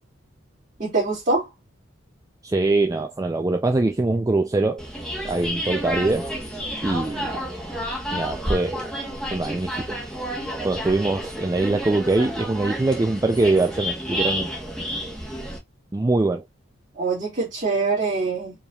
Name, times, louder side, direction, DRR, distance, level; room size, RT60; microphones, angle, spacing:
voice 1, 0.8-1.5 16.9-18.5, right 3 dB, 40° right, 2.1 m, -24 dB
voice 2, 2.4-4.8 5.2-6.3 6.8-7.3 8.1-8.9 9.3-10.0 10.6-14.5 15.9-16.4, right 2 dB, 15° right, 0.3 m, -23 dB
sound 1, 4.8-15.6, equal, 5° left, 1.1 m, -30 dB
4.8 x 3.4 x 2.3 m
head